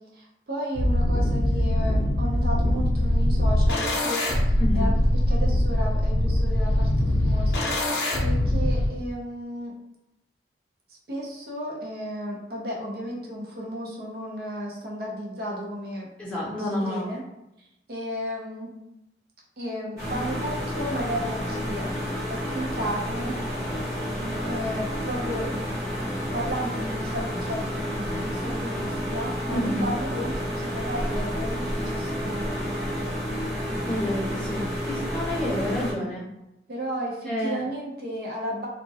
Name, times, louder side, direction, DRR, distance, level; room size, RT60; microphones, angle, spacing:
voice 1, 0.0-4.3 4.7-4.9 5.3-9.7 11.1-16.1 16.5-17.2 17.6-18.7 19.6-21.9 22.3-23.5 24.2-25.6 26.3-33.1 36.7-38.7, equal, 60° right, -3 dB, 0.5 m, -33 dB
sound 1, 0.7-8.9, left 1 dB, 70° left, 0.5 m, -22 dB
voice 2, 4.6-4.9 16.2-17.1 29.5-29.9 33.9-34.6 34.9-36.2 37.3-37.6, left 1 dB, 5° left, -8 dB, 0.7 m, -29 dB
sound 2, 20.0-35.9, equal, 20° right, 0.9 m, -30 dB
2.2 x 2.0 x 2.7 m, 0.88 s
head